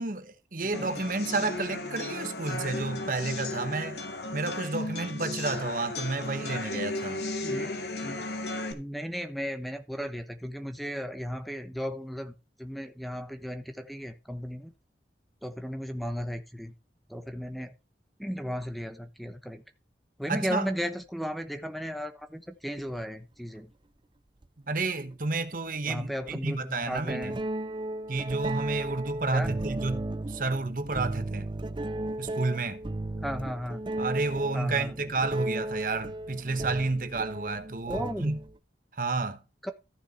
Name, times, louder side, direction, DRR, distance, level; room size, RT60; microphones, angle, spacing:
voice 1, 0.0-4.0 4.3-7.2 20.3-20.7 24.7-27.3 28.1-31.5 32.2-32.8 34.0-38.4 38.9-39.4, right 3 dB, 50° right, 1.2 m, -31 dB
voice 2, 0.6-0.9 7.4-7.7 8.0-8.2 8.7-12.3 12.6-14.7 15.4-16.7 17.1-17.7 18.2-19.6 20.2-23.7 25.8-27.4 29.3-29.5 33.2-33.9 34.5-34.9 37.9-38.4 39.6-39.7, equal, ahead, 1.0 m, -35 dB
sound 1, 0.7-8.7, left 2 dB, 75° left, 2.2 m, -35 dB
sound 2, 22.8-22.9 24.4-24.5 26.3-26.4 27.0-38.6, right 1 dB, 25° right, 0.5 m, -35 dB
14.5 x 6.8 x 4.3 m
head